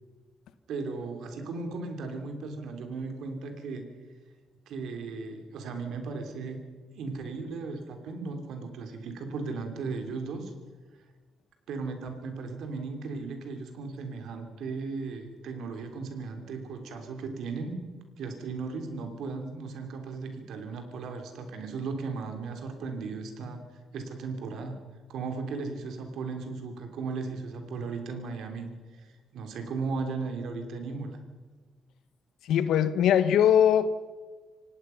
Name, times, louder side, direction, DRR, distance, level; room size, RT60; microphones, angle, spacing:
voice 1, 0.7-3.9 4.7-6.6 6.9-10.5 11.7-17.8 18.2-23.6 23.9-24.8 25.1-31.2, right 4 dB, 75° right, 3.1 m, -36 dB
voice 2, 32.4-34.1, left 9 dB, 80° left, 1.1 m, -22 dB
26.0 x 17.5 x 5.7 m
cardioid pair, 90°, 0 cm